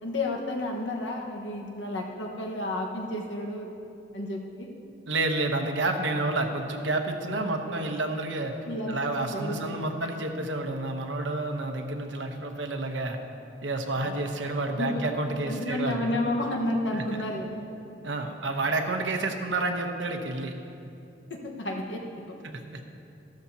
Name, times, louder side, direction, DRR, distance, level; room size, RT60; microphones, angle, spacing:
voice 1, 0.0-3.7 4.1-4.7 7.3-7.9 8.7-9.8 13.9-14.2 14.8-15.0 15.3-17.6 21.3-22.4, left 1 dB, 85° left, 0 dB, 1.4 m, -32 dB
voice 2, 5.1-8.5 8.9-13.2 13.6-16.0 16.9-17.0 18.0-20.5 22.4-22.8, right 2 dB, 90° right, 4 dB, 1.0 m, -29 dB
13.5 x 13.0 x 2.9 m, 2.7 s
head